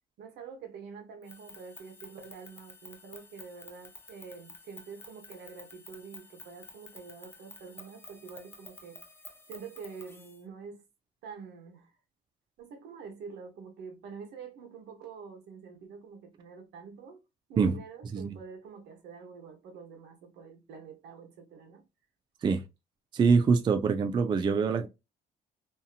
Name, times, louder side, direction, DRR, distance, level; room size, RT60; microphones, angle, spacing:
voice 1, 0.2-9.0 9.5-10.8 11.2-11.9 12.6-17.2 17.5-21.8, right 5 dB, 75° right, 1.1 m, -46 dB
sound 1, 1.2-10.4, left 2 dB, 15° left, 0.6 m, -51 dB
voice 2, 23.1-24.9, right 5 dB, 25° right, 0.3 m, -24 dB
2.7 x 2.6 x 2.3 m
cardioid pair, 110°, 17 cm